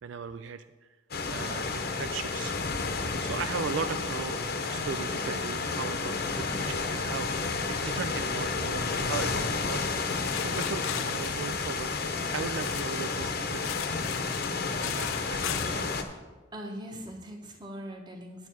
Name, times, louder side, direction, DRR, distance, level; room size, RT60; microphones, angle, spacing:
voice 1, 0.0-0.6 1.3-2.6 2.9-13.9 14.7-15.8, right 6 dB, 65° right, 10 dB, 0.3 m, -38 dB
sound 1, 1.1-16.0, left 4 dB, 50° left, 0.8 m, -31 dB
sound 2, 10.1-13.1 13.5-15.9, left 12 dB, 75° left, 0.3 m, -38 dB
voice 2, 16.5-18.5, equal, 20° right, 2 dB, 1.2 m, -41 dB
9.3 x 8.9 x 4.5 m, 1.3 s
head